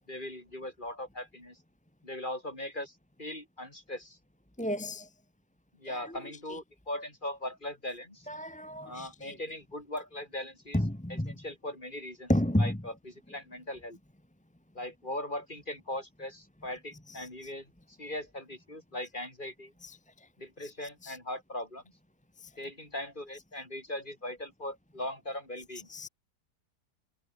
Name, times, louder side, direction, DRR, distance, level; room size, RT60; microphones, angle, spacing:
voice 1, 0.1-1.6 2.0-2.9 3.2-4.2 5.8-8.3 8.8-12.3 12.6-14.0 14.7-19.7 20.4-21.8 22.6-25.9, left 1 dB, 25° left, 6.1 m, -39 dB
voice 2, 4.6-5.0 8.3-9.1 11.2-11.3 12.3-12.7 25.9-26.1, left 1 dB, 5° left, 1.4 m, -29 dB
omnidirectional pair, 1.8 m